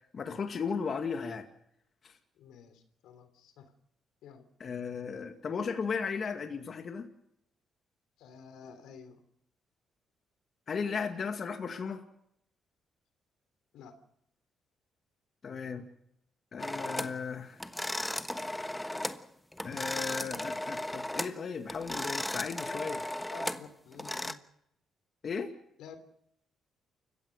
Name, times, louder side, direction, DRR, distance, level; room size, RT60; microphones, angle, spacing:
voice 1, 0.1-1.5 2.0-2.1 4.6-7.1 10.7-12.0 15.4-15.8 16.5-17.6 19.6-23.0 25.2-25.5, left 5 dB, 50° left, 5 dB, 2.1 m, -35 dB
voice 2, 2.3-3.7 4.2-4.4 8.2-9.2 13.7-13.9 23.3-24.4 25.8-26.0, left 5 dB, 85° left, 9 dB, 3.3 m, -50 dB
sound 1, 16.6-17.2 17.6-19.2 19.5-21.4 21.7-24.3, left 1 dB, 10° left, 1.3 m, -36 dB
29.0 x 16.0 x 6.6 m, 0.77 s
cardioid pair, 90°, 0 cm